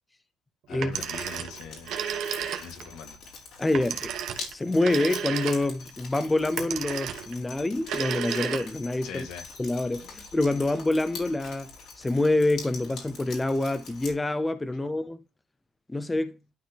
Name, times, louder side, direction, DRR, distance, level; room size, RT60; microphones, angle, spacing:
voice 1, 0.7-1.9 2.6-3.2 9.0-9.5, left 6 dB, 80° left, 1.8 m, -41 dB
Telephone, 0.7-2.9 3.7-5.9 6.6-7.4 7.8-9.0, right 8 dB, 65° right, 1.2 m, -33 dB
Drip, 0.9-14.1, left 4 dB, 65° left, 3.4 m, -44 dB
voice 2, 3.6-4.1 4.5-9.3 9.6-11.7 12.0-15.2 15.9-16.3, left 2 dB, 15° left, 0.8 m, -26 dB
12.0 x 4.1 x 2.9 m
cardioid pair, 120°, 0 cm